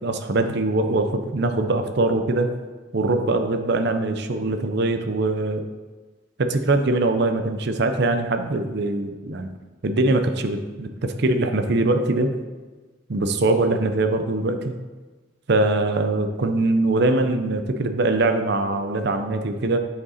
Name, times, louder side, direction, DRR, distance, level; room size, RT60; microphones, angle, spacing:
voice 1, 0.0-2.5 2.9-5.6 6.4-9.5 9.8-12.3 13.1-14.7 15.5-19.8, right 2 dB, 55° right, 7 dB, 0.6 m, -22 dB
7.4 x 5.2 x 4.1 m, 1.3 s
head